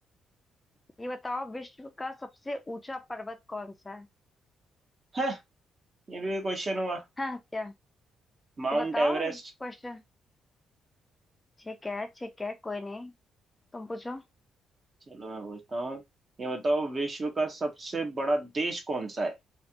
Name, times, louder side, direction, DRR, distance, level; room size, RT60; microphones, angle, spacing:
voice 1, 1.0-4.1 7.2-7.7 8.7-10.0 11.6-13.1 13.7-14.2, left 2 dB, 15° left, 0.5 m, -37 dB
voice 2, 6.1-7.0 8.6-9.4 15.1-16.0 16.4-19.3, right 2 dB, 35° right, 1.1 m, -30 dB
3.2 x 2.5 x 2.9 m
cardioid pair, 90°, 0 cm